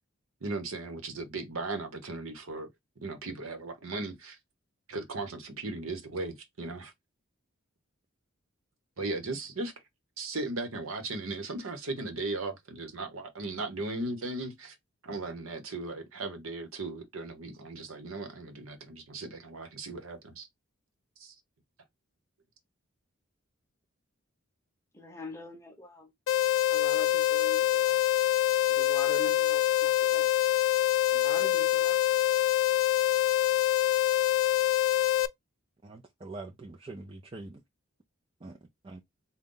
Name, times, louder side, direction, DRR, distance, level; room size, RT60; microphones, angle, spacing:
voice 1, 0.4-2.7 3.0-4.4 4.9-6.9 9.0-9.7 10.2-14.8 15.0-20.5 21.2-21.3, right 2 dB, 75° right, 0.9 m, -37 dB
voice 2, 24.9-26.1 26.7-28.0 28.8-30.3 31.2-32.0, left 2 dB, 10° left, 0.8 m, -43 dB
sound 1, 26.3-35.3, left 13 dB, 70° left, 0.3 m, -25 dB
voice 3, 35.8-37.6 38.4-38.6 38.8-39.0, right 2 dB, 25° right, 0.4 m, -44 dB
3.9 x 2.2 x 3.7 m
head